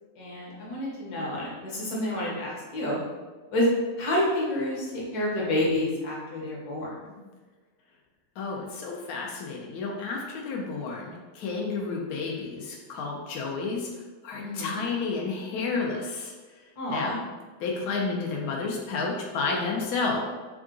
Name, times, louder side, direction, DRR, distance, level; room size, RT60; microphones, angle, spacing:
voice 1, 0.2-3.0 3.5-3.6 4.0-6.9 14.4-14.8 16.8-17.2, left 1 dB, 55° left, -4 dB, 1.3 m, -29 dB
voice 2, 8.4-13.9 14.2-16.3 16.9-17.2 17.6-20.2, left 4 dB, 85° left, -1 dB, 0.8 m, -31 dB
3.7 x 2.4 x 3.7 m, 1.3 s
omnidirectional pair, 2.3 m